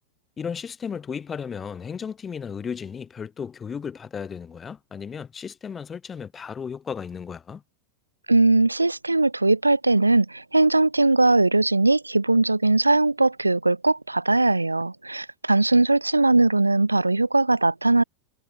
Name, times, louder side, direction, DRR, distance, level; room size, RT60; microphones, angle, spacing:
voice 1, 0.4-7.6, left 6 dB, 20° left, 2.3 m, -34 dB
voice 2, 8.3-18.0, right 2 dB, 85° right, 1.3 m, -20 dB
figure-of-eight pair, 90°, 0 cm